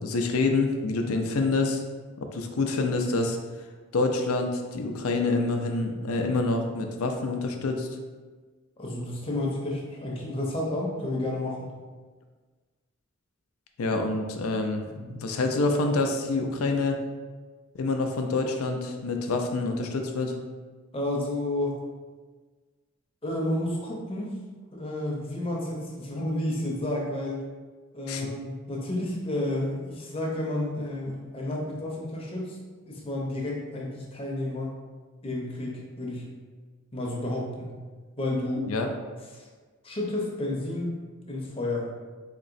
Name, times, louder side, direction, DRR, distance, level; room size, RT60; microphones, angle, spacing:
voice 1, 0.0-1.8 2.3-3.4 3.9-7.9 13.8-14.8 15.2-17.0 17.7-20.4 28.1-28.3 38.7-38.9, left 3 dB, 85° left, 4 dB, 0.5 m, -27 dB
voice 2, 8.8-11.8 14.9-15.1 20.9-21.8 23.2-24.4 24.7-27.4 27.9-32.6 32.9-34.7 35.2-36.3 36.9-37.7 38.2-38.7 39.3-39.4 39.8-40.9 41.3-41.9, left 1 dB, 25° left, -2 dB, 0.6 m, -31 dB
4.0 x 2.9 x 2.5 m, 1.4 s
head